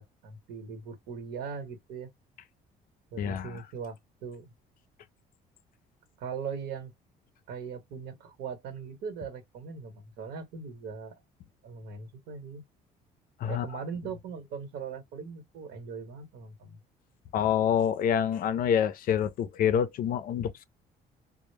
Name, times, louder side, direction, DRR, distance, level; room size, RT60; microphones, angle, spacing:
voice 1, 0.0-2.1 3.1-4.5 6.2-6.9 7.5-11.1 11.6-12.6 13.5-16.8, right 6 dB, 75° right, 1.0 m, -40 dB
voice 2, 3.2-3.6 13.4-13.7 17.3-20.7, left 8 dB, 60° left, 0.4 m, -27 dB
2.0 x 2.0 x 3.1 m
cardioid pair, 110°, 17 cm